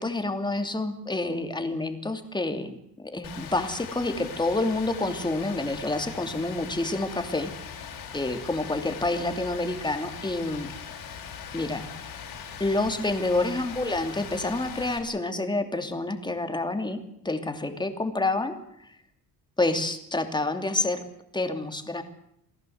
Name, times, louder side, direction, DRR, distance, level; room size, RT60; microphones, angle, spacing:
voice 1, 0.0-7.7 8.1-10.7 11.5-11.9 12.6-18.6 19.6-21.0 21.3-22.0, left 2 dB, 10° left, 7 dB, 2.8 m, -28 dB
Rain, 3.2-15.0, left 7 dB, 75° left, 6.8 m, -40 dB
28.5 x 18.0 x 8.0 m, 0.76 s
cardioid pair, 135°, 36 cm